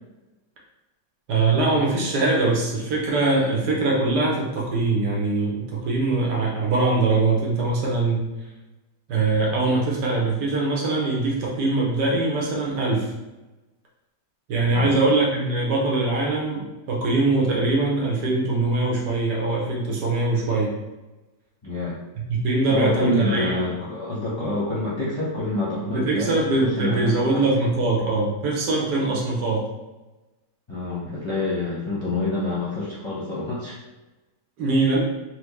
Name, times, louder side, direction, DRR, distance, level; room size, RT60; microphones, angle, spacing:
voice 1, 1.3-8.2 9.1-13.1 14.5-20.7 22.3-23.5 25.9-29.6 34.6-35.0, right 3 dB, 80° right, -3 dB, 1.5 m, -22 dB
voice 2, 21.6-21.9 22.7-26.5 26.8-27.4 30.7-33.8, left 2 dB, 20° left, -9 dB, 0.8 m, -27 dB
4.5 x 2.1 x 3.0 m, 1.1 s
omnidirectional pair, 1.8 m